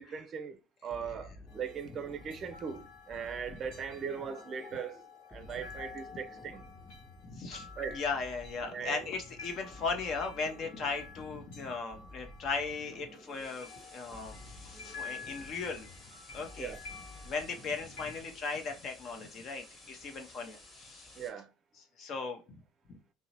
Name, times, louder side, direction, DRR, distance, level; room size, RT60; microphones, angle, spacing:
voice 1, 0.0-5.0 5.3-6.6 7.8-8.0 8.6-9.1 16.6-16.8 21.2-21.5, right 7 dB, 40° right, 0.4 m, -39 dB
sound 1, 0.9-18.5, left 1 dB, 5° left, 0.7 m, -53 dB
sound 2, 1.5-18.2, left 5 dB, 70° left, 0.9 m, -51 dB
voice 2, 7.2-15.9 16.3-16.7 17.3-21.1 22.0-22.6 22.9-23.0, left 4 dB, 50° left, 0.7 m, -37 dB
sound 3, 13.2-21.3, left 2 dB, 30° left, 1.2 m, -55 dB
2.8 x 2.1 x 2.8 m
hypercardioid pair, 80°, 0 cm